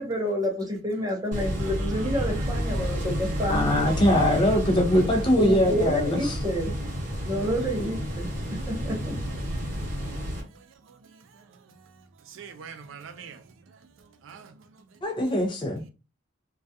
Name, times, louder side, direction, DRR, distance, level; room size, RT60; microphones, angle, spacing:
voice 1, 0.0-3.8 5.4-7.0 7.2-9.2, equal, 20° right, 0.6 m, -29 dB
sound 1, 1.3-10.4, equal, 40° right, 0.9 m, -30 dB
voice 2, 1.6-3.1 3.4-3.5 3.9-4.6 4.9-5.2 6.2-6.4 8.4-8.6 10.4-15.0, right 6 dB, 70° right, 0.4 m, -46 dB
voice 3, 3.5-6.4 15.0-15.9, left 1 dB, 25° left, 0.4 m, -22 dB
2.3 x 2.2 x 2.6 m
head